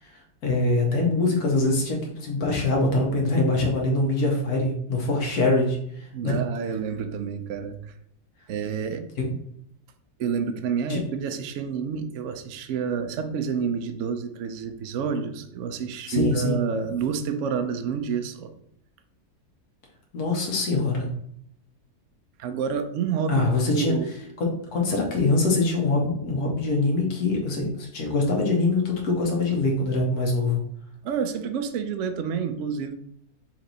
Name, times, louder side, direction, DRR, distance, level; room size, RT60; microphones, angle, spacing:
voice 1, 0.4-6.3 9.2-9.3 10.9-11.0 16.1-16.6 20.1-21.1 23.3-23.9 24.4-30.6, left 2 dB, 70° left, 0 dB, 1.5 m, -24 dB
voice 2, 6.1-7.9 8.5-9.1 10.2-18.5 22.4-24.1 31.0-32.9, right 6 dB, 70° right, 8 dB, 0.7 m, -29 dB
4.4 x 3.0 x 3.9 m, 0.70 s
omnidirectional pair, 1.7 m